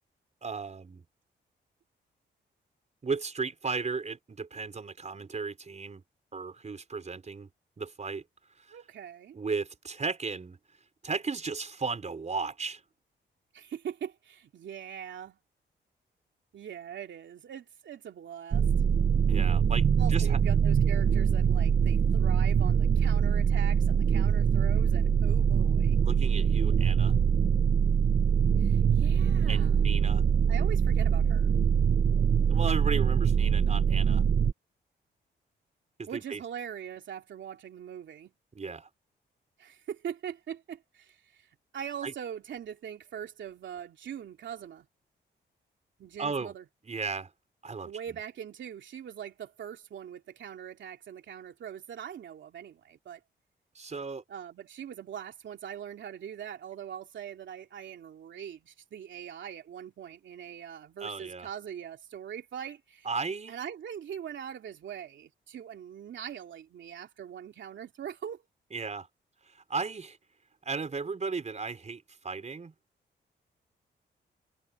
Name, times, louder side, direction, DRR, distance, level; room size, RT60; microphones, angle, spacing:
voice 1, 0.4-1.0 3.0-6.0 6.3-7.5 7.8-8.2 8.6-8.8 9.3-10.6 11.0-12.8 19.3-20.4 26.0-27.1 29.4-30.2 32.5-34.2 36.0-36.4 38.5-38.9 42.0-42.1 46.2-46.5 46.8-47.3 47.6-48.2 53.7-54.2 61.0-61.5 63.0-63.5 68.7-69.1 69.5-70.2 70.6-72.7, right 4 dB, 35° right, 5.0 m, -35 dB
voice 2, 8.7-9.4 13.5-15.4 16.5-18.7 20.0-26.0 28.6-29.8 30.5-31.5 36.1-38.3 39.6-44.9 46.0-46.6 47.8-53.2 54.3-63.1 63.5-68.4, right 9 dB, 80° right, 3.0 m, -42 dB
sound 1, 18.5-34.5, right 7 dB, 55° right, 1.1 m, -24 dB
cardioid pair, 95°, 19 cm